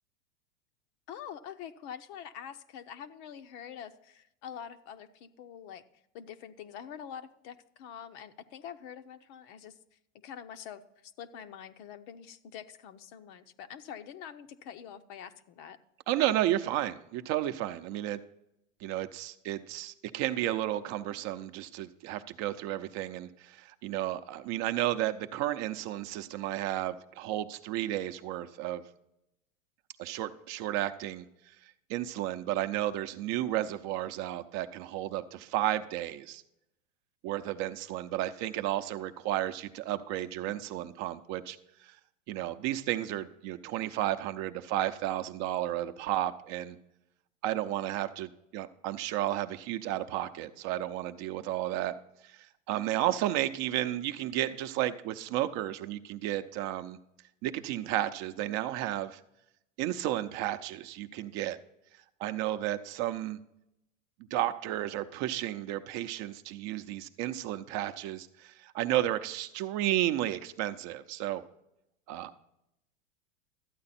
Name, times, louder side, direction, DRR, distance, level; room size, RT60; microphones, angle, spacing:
voice 1, 1.1-5.8 6.1-15.8, left 8 dB, 50° left, 10 dB, 0.8 m, -45 dB
voice 2, 16.1-18.2 18.8-28.8 30.0-31.3 31.9-36.4 37.2-41.6 41.8-41.9 42.3-46.8 47.4-51.9 52.2-57.0 57.4-59.2 59.8-61.6 62.2-63.4 64.3-71.4 72.1-72.4, right 13 dB, 45° right, 10 dB, 0.7 m, -32 dB
13.0 x 8.7 x 4.2 m, 0.82 s
hypercardioid pair, 115°, 39 cm